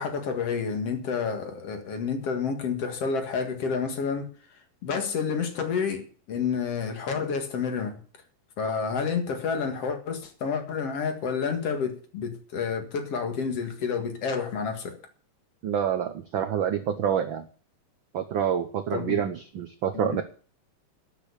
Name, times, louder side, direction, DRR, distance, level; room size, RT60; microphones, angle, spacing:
voice 1, 0.0-4.3 4.8-8.0 8.6-15.0 18.9-19.2 19.9-20.2, left 5 dB, 55° left, 2.8 m, -29 dB
voice 2, 15.6-17.4 18.1-20.2, right 8 dB, 75° right, 1.1 m, -27 dB
12.0 x 7.0 x 8.3 m
omnidirectional pair, 3.3 m